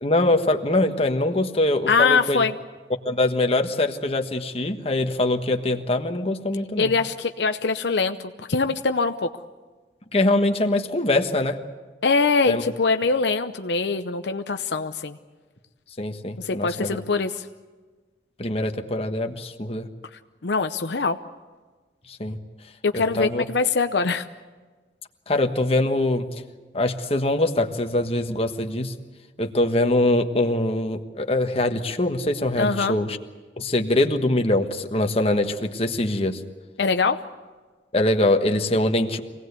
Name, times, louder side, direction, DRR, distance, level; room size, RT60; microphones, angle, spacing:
voice 1, 0.0-2.4 3.0-6.9 10.1-11.6 12.5-12.6 16.0-17.0 18.4-19.9 22.1-22.4 22.9-23.4 25.3-26.3 26.7-28.9 29.4-33.2 33.6-36.4 37.9-39.2, left 1 dB, 35° left, 5 dB, 1.4 m, -23 dB
voice 2, 1.9-2.5 6.8-9.3 12.0-15.2 16.4-17.5 20.4-21.2 22.8-24.2 32.6-33.0 36.8-37.2, left 4 dB, 75° left, 7 dB, 0.7 m, -23 dB
25.0 x 18.0 x 8.2 m, 1.4 s
head